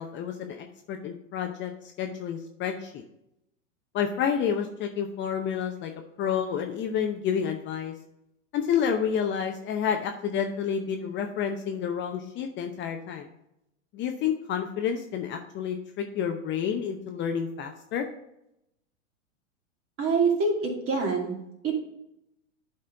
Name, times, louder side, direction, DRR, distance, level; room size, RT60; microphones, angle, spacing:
voice 1, 0.0-1.7 2.0-3.0 3.9-5.9 6.2-7.9 8.5-13.3 13.9-18.1, left 7 dB, 30° left, 4 dB, 0.7 m, -29 dB
voice 2, 20.0-21.4 21.6-21.7, right 4 dB, 35° right, -1 dB, 2.7 m, -25 dB
11.0 x 4.3 x 3.9 m, 0.83 s
hypercardioid pair, 105°, 40 cm